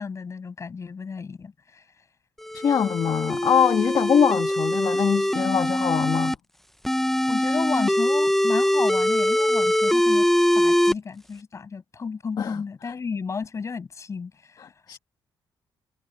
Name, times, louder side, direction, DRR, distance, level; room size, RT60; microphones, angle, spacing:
voice 1, 0.0-1.8 7.3-10.3 10.6-14.7, left 5 dB, 35° left, 7.3 m, -33 dB
sound 1, 2.4-6.3 6.8-10.9, left 1 dB, 5° left, 0.5 m, -22 dB
voice 2, 2.5-6.4 12.4-12.6 14.6-15.0, left 7 dB, 55° left, 1.7 m, -23 dB
cardioid pair, 125°, 8 cm